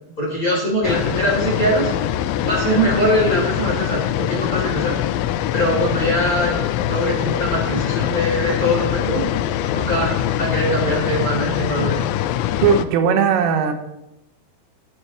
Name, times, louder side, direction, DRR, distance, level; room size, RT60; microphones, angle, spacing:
voice 1, 0.2-1.9 2.4-4.9 5.5-6.6 6.9-9.2 9.7-10.1 10.4-12.0, equal, 20° left, -4 dB, 3.5 m, -22 dB
sound 1, 0.8-12.9, left 11 dB, 85° left, 3.0 m, -23 dB
voice 2, 12.6-13.7, right 7 dB, 90° right, 6 dB, 3.8 m, -17 dB
20.0 x 9.6 x 3.3 m, 0.85 s
omnidirectional pair, 5.6 m